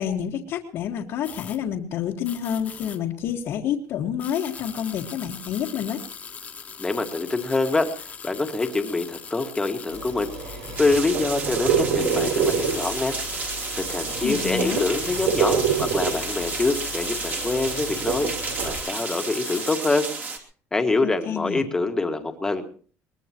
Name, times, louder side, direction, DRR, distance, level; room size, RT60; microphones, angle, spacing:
voice 1, 0.0-6.0 14.2-14.9 21.0-21.6, left 9 dB, 50° left, -2 dB, 1.7 m, -28 dB
sound 1, 1.2-1.6 2.2-3.0 4.2-11.1 11.8-19.8, left 6 dB, 25° left, 1.7 m, -39 dB
voice 2, 6.8-7.9 8.2-10.3 10.8-13.2 13.7-18.3 18.6-20.1 20.7-22.6, left 3 dB, 10° left, 6 dB, 1.9 m, -25 dB
sound 2, 9.9-18.7, right 6 dB, 85° right, 6.4 m, -28 dB
sound 3, 10.8-20.4, right 4 dB, 30° right, 2.8 m, -32 dB
22.5 x 21.0 x 3.0 m, 0.41 s
cardioid pair, 165°, 6 cm